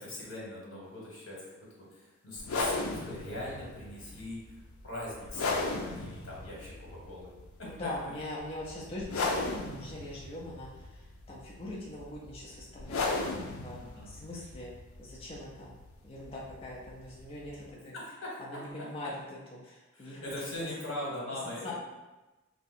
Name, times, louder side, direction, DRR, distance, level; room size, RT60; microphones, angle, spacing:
voice 1, 0.0-1.4 1.8-4.4 4.8-7.3 7.6-7.7 13.8-14.1 17.9-18.6 19.9-21.7, left 1 dB, 70° left, -5 dB, 1.2 m, -41 dB
sound 1, 2.4-17.7, left 3 dB, 90° left, 0.4 m, -37 dB
voice 2, 7.6-10.7 11.3-13.0 13.3-13.8 14.1-14.7 15.0-15.7 16.0-17.9 18.4-19.1 19.6-20.2 21.6-21.7, left 1 dB, 25° left, -4 dB, 0.4 m, -42 dB
2.7 x 2.3 x 4.1 m, 1.1 s
head